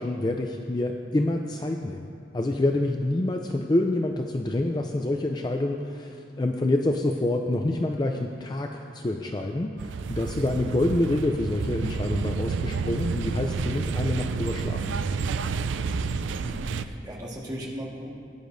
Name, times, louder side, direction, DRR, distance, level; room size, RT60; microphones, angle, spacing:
voice 1, 0.0-2.1 2.3-15.0, left 1 dB, 20° left, 3 dB, 0.4 m, -27 dB
sound 1, 9.8-16.8, right 5 dB, 80° right, 0.4 m, -30 dB
voice 2, 16.4-18.1, equal, 20° right, -3 dB, 1.5 m, -37 dB
17.5 x 10.0 x 2.6 m, 2.4 s
head